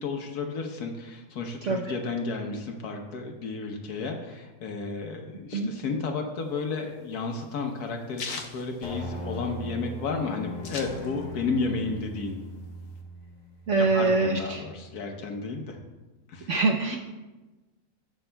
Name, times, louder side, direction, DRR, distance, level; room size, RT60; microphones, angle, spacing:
voice 1, 0.0-12.4 13.8-15.8 16.3-16.5, left 4 dB, 80° left, 2 dB, 1.4 m, -32 dB
sound 1, 6.4-9.6 9.9-10.0 10.2-11.5 11.8-13.0, left 4 dB, 60° left, 1.2 m, -39 dB
sound 2, 8.8-15.3, left 1 dB, 45° left, 1.6 m, -40 dB
voice 2, 13.7-14.6 16.5-17.0, right 3 dB, 60° right, 1 dB, 1.0 m, -24 dB
18.0 x 6.2 x 2.2 m, 1.2 s
omnidirectional pair, 1.6 m